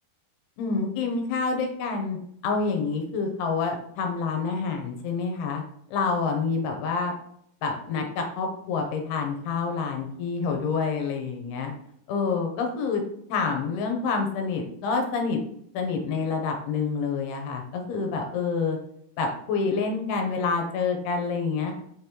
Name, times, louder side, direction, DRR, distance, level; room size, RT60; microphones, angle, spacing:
voice 1, 0.6-2.2 2.4-5.6 5.9-7.1 7.6-11.7 12.1-13.0 13.3-15.4 15.7-18.8 19.2-21.8, left 4 dB, 80° left, 3 dB, 2.7 m, -27 dB
6.3 x 5.2 x 2.9 m, 0.72 s
omnidirectional pair, 4.7 m